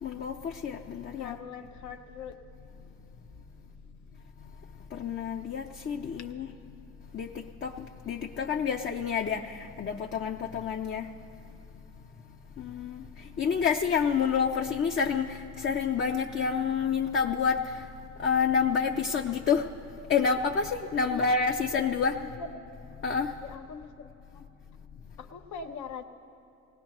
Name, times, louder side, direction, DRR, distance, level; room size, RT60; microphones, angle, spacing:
voice 1, 0.0-1.3 5.0-6.5 7.1-7.3 7.6-7.7 8.1-9.4 9.8-11.0 12.6-13.0 13.4-15.3 15.6-17.6 18.2-19.6 20.1-22.2 23.0-23.3, left 6 dB, 40° left, 2 dB, 0.6 m, -28 dB
voice 2, 1.2-2.3 21.1-21.3 22.2-22.5 23.4-24.5 25.2-26.0, left 5 dB, 70° left, 6 dB, 0.8 m, -42 dB
19.0 x 18.0 x 3.0 m, 2.8 s
cardioid pair, 90°, 30 cm